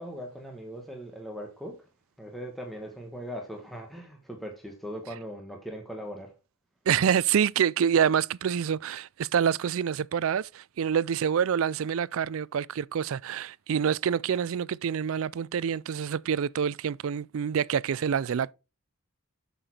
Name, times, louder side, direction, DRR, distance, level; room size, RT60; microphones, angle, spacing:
voice 1, 0.0-1.9 2.2-6.4, equal, ahead, 1.4 m, -40 dB
voice 2, 6.9-18.5, right 8 dB, 65° right, 0.4 m, -27 dB
8.9 x 6.7 x 4.3 m
head